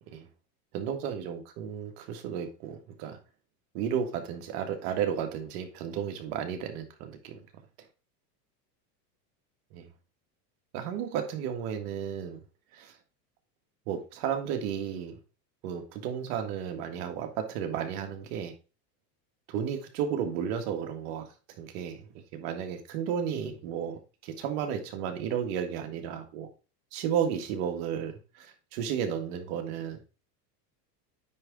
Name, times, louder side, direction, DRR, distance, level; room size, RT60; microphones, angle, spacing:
voice 1, 0.7-3.2 3.7-7.4 9.7-9.9 10.7-12.4 12.7-12.9 13.9-15.1 15.6-18.5 19.5-21.3 21.6-26.5 26.9-30.1, right 8 dB, 65° right, 6 dB, 1.8 m, -33 dB
9.6 x 3.5 x 4.7 m, 0.33 s
supercardioid pair, 130°, 48 cm